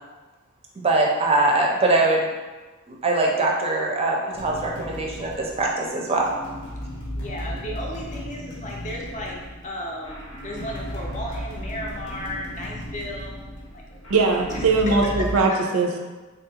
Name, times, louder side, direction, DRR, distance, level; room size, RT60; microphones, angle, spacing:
voice 1, 0.8-2.3 2.9-6.3, right 2 dB, 30° right, -1 dB, 0.5 m, -22 dB
sound 1, 4.3-15.4, equal, 80° left, 0.8 m, -35 dB
voice 2, 7.2-13.8 14.5-14.8 15.5-15.6, left 1 dB, 35° left, -2 dB, 0.5 m, -35 dB
voice 3, 14.1-15.9, right 3 dB, 85° right, 3 dB, 0.4 m, -20 dB
3.5 x 2.3 x 2.8 m, 1.2 s
head